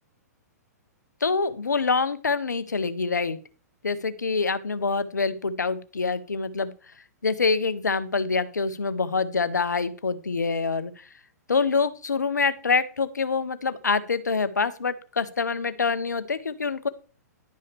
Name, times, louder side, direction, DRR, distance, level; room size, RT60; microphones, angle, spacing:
voice 1, 1.2-3.4 3.8-6.7 7.2-10.9 11.5-16.9, left 4 dB, 85° left, 13 dB, 0.8 m, -25 dB
11.0 x 5.6 x 3.4 m, 0.36 s
hypercardioid pair, 120°, 9 cm